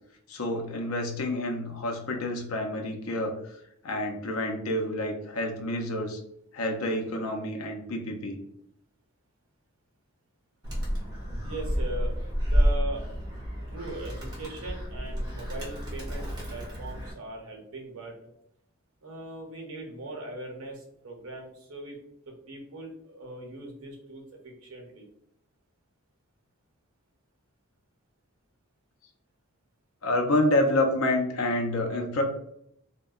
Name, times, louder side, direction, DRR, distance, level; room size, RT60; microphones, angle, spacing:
voice 1, 0.3-3.4 3.8-6.2 6.5-8.4 30.0-32.2, left 1 dB, 90° left, 2 dB, 0.5 m, -28 dB
Animal, 10.6-17.1, equal, 20° right, 0.8 m, -30 dB
voice 2, 11.4-12.1 12.4-13.0 13.7-18.2 19.0-22.0 22.5-25.1, right 2 dB, 90° right, 1 dB, 0.7 m, -40 dB
2.7 x 2.2 x 2.3 m, 0.73 s
head